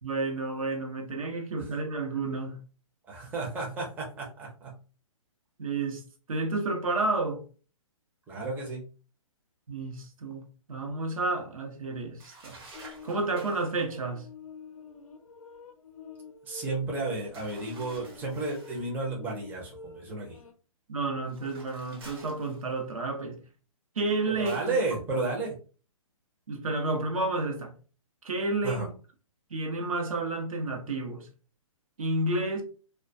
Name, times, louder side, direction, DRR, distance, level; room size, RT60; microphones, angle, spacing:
voice 1, 0.0-2.6 5.6-6.0 6.3-7.4 9.7-12.6 13.0-14.3 20.9-23.4 24.0-24.8 26.5-27.7 28.2-28.9 29.5-31.3 32.0-32.6, right 2 dB, 80° right, 0.7 m, -31 dB
voice 2, 3.1-4.7 8.3-8.9 16.5-20.4 24.3-25.5 28.6-28.9, right 3 dB, 10° right, 0.5 m, -32 dB
sound 1, 12.2-13.8 17.3-18.9 21.2-23.0 24.5-24.8, right 3 dB, 45° right, 0.8 m, -50 dB
sound 2, 12.7-20.5, left 5 dB, 75° left, 0.5 m, -48 dB
2.2 x 2.2 x 2.5 m
hypercardioid pair, 135°, 18 cm